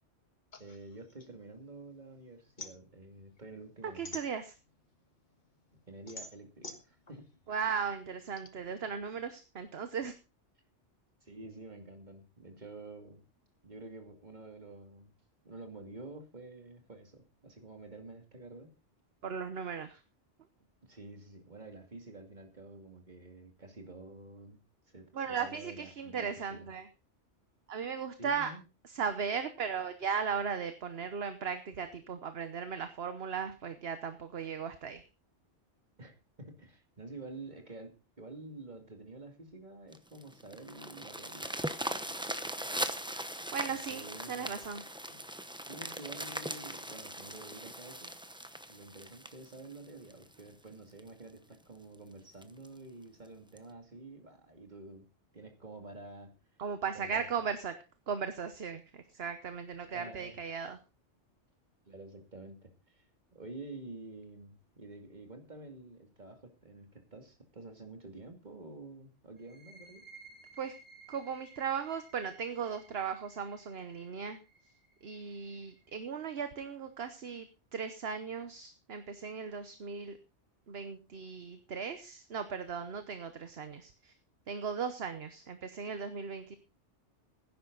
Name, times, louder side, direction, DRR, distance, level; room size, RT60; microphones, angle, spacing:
sound 1, 0.5-2.0 2.3-4.9 5.3-8.5, left 2 dB, 40° left, 1.6 m, -48 dB
voice 1, 0.6-4.2 5.9-7.3 11.2-13.2 13.6-15.1 15.4-18.7 20.8-24.6 24.9-26.7 28.2-28.6 36.0-42.3 43.7-44.7 45.1-45.2 45.6-48.1 48.7-55.1 55.3-56.3 56.9-57.3 59.9-60.4 61.9-63.1 63.3-70.0, right 2 dB, 40° right, 4 dB, 2.6 m, -49 dB
voice 2, 3.9-4.5 7.5-10.1 19.2-20.0 25.1-26.9 27.7-28.5 28.9-35.0 43.5-44.0 44.3-44.8 56.6-57.7 58.1-60.8 70.6-70.7 71.1-74.4 75.0-77.5 77.7-80.2 80.7-84.1 84.5-86.6, right 6 dB, 60° right, 10 dB, 1.2 m, -37 dB
sound 2, 39.9-50.4 51.0-51.1 51.5-51.6 51.9-52.0 52.4-52.7 53.6-53.7, right 1 dB, 5° right, 0.8 m, -40 dB
sound 3, 69.4-76.8, right 3 dB, 15° left, 3.1 m, -58 dB
16.0 x 10.0 x 3.9 m, 0.30 s
omnidirectional pair, 1.2 m